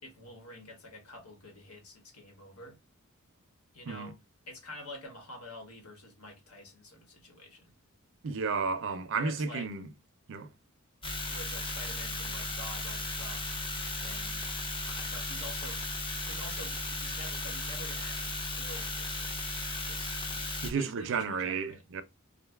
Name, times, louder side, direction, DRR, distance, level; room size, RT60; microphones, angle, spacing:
voice 1, 0.0-2.8 3.7-4.2 4.5-7.7 9.1-9.7 11.3-13.5 14.0-14.4 14.8-15.8 16.1-19.4 19.8-21.8, left 1 dB, 80° left, 1.2 m, -48 dB
voice 2, 8.2-9.9 10.3-10.5 20.6-22.0, right 5 dB, 60° right, 0.4 m, -32 dB
sound 1, 11.0-20.7, left 2 dB, 25° left, 0.6 m, -36 dB
2.6 x 2.2 x 3.3 m
head